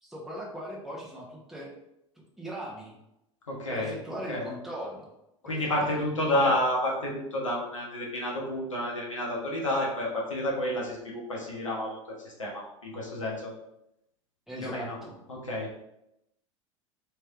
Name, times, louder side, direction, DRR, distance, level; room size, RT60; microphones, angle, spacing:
voice 1, 0.0-1.7 2.2-2.9 3.7-5.1 5.4-6.0 6.3-6.5 14.5-15.2, equal, ahead, -4 dB, 1.1 m, -39 dB
voice 2, 3.5-4.4 5.4-13.5 14.6-15.0 15.3-15.7, left 1 dB, 80° left, -3 dB, 1.0 m, -30 dB
3.3 x 3.2 x 3.6 m, 0.83 s
figure-of-eight pair, 80°, 16 cm